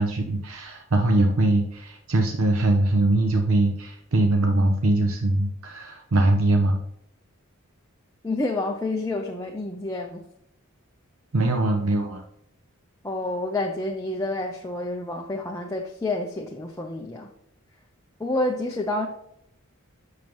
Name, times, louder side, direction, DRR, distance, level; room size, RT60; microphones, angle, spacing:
voice 1, 0.0-6.8 11.3-12.2, right 2 dB, 70° right, 4 dB, 0.7 m, -22 dB
voice 2, 8.2-10.2 13.0-17.3 18.2-19.1, left 2 dB, 15° left, 0 dB, 0.6 m, -28 dB
7.0 x 6.4 x 3.1 m, 0.77 s
head